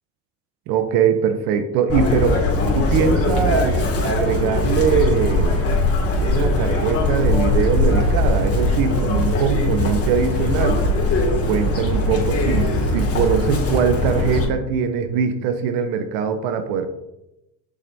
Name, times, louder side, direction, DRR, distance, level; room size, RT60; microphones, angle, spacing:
voice 1, 0.7-2.4 2.7-5.6 6.2-10.8 11.5-16.9, right 7 dB, 70° right, 8 dB, 0.8 m, -22 dB
Chirp tweet, 1.9-14.4, left 2 dB, 40° left, 2.2 m, -20 dB
7.6 x 6.3 x 2.7 m, 0.92 s
supercardioid pair, 95°, 38 cm